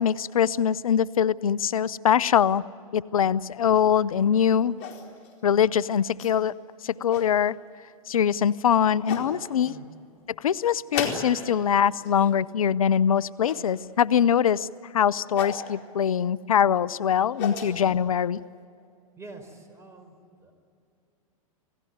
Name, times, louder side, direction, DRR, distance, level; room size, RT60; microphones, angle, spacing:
voice 1, 0.0-2.6 2.9-4.8 5.4-6.5 6.8-7.6 8.1-9.7 10.4-14.7 14.9-18.4, left 8 dB, 80° left, 19 dB, 0.6 m, -23 dB
sound 1, 4.8-5.3 6.2-6.3 6.9-7.3 8.4-8.5 9.1-9.3 10.9-11.6 11.9-12.3 13.4-13.6 15.3-15.6 17.0-17.7, left 7 dB, 50° left, 4.4 m, -33 dB
voice 2, 19.2-20.5, right 3 dB, 15° right, 7 dB, 4.9 m, -46 dB
28.0 x 18.5 x 9.4 m, 2.4 s
hypercardioid pair, 105°, 18 cm